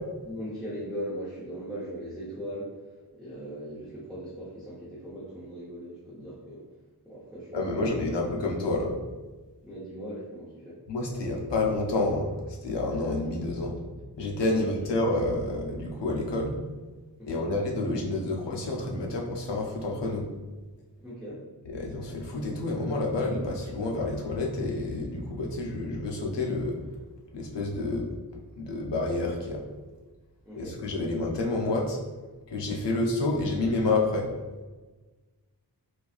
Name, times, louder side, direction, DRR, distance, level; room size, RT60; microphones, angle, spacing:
voice 1, 0.2-2.7 3.1-6.6 7.0-8.3 9.6-10.8 14.5-14.9 17.2-17.5 21.0-21.4 30.4-30.8, equal, ahead, -11 dB, 0.9 m, -39 dB
voice 2, 7.5-8.9 10.9-13.7 14.2-16.6 17.3-20.3 21.7-26.8 27.3-28.1 28.6-29.6 30.5-32.0 32.5-34.3, left 2 dB, 80° left, 0 dB, 0.7 m, -29 dB
4.2 x 2.3 x 2.4 m, 1.3 s
wide cardioid pair, 60°, 42 cm